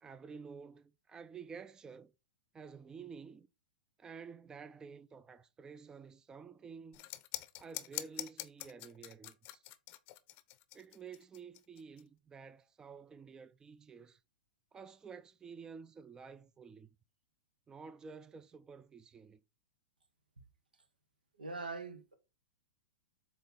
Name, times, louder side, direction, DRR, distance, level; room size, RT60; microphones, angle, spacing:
voice 1, 0.0-2.1 2.5-3.5 4.0-7.1 7.6-9.6 10.7-14.2 14.7-16.9 17.7-19.4, right 5 dB, 15° right, 0.4 m, -51 dB
sound 1, 6.9-12.0, left 17 dB, 40° left, 0.6 m, -44 dB
voice 2, 21.4-22.1, right 3 dB, 90° right, 1.1 m, -42 dB
7.6 x 3.0 x 4.2 m
hypercardioid pair, 115°, 5 cm